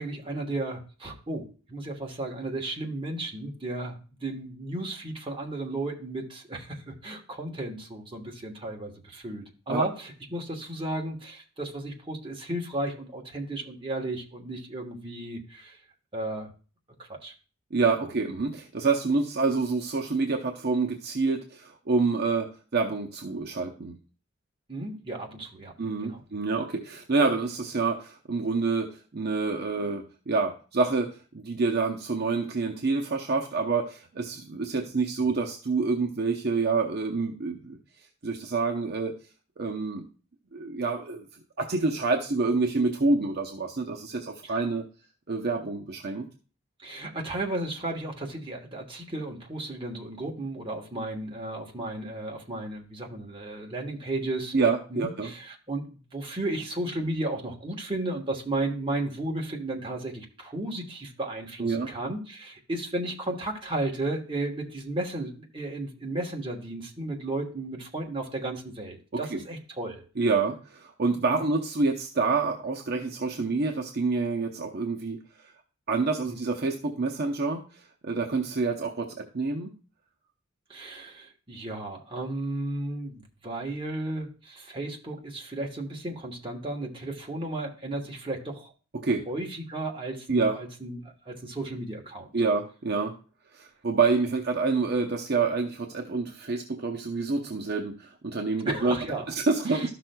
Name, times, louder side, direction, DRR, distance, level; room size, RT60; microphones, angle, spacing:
voice 1, 0.0-15.8 16.1-16.5 17.0-17.3 24.7-25.7 26.0-26.2 44.4-44.6 46.8-54.5 54.9-70.0 71.3-71.5 76.3-76.4 80.7-88.7 89.3-92.3 98.6-99.3 99.7-99.9, right 2 dB, 25° right, 1 dB, 1.2 m, -34 dB
voice 2, 17.7-24.0 25.8-37.8 38.2-39.2 39.6-40.0 40.5-41.3 41.6-44.8 45.3-46.3 54.5-55.3 61.6-61.9 69.3-69.4 70.2-75.2 75.9-79.7 89.0-89.2 90.3-90.6 92.3-93.1 93.5-99.0 99.3-99.9, right 4 dB, 50° right, 1 dB, 0.7 m, -27 dB
13.0 x 6.0 x 2.2 m, 0.37 s
head